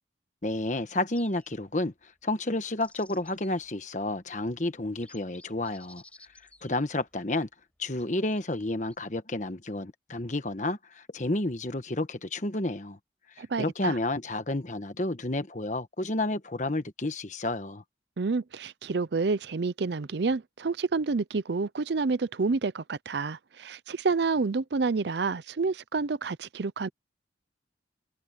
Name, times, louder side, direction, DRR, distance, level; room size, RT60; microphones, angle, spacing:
voice 1, 0.4-6.0 6.6-7.5 7.8-13.0 13.4-17.8, left 2 dB, 40° left, 1.3 m, -31 dB
sound 1, 1.1-1.8 2.5-3.8 4.3-4.4 4.9-7.2 8.0-9.0, left 2 dB, 5° left, 6.3 m, -56 dB
voice 2, 13.4-14.0 18.2-26.9, right 4 dB, 65° right, 0.5 m, -29 dB
head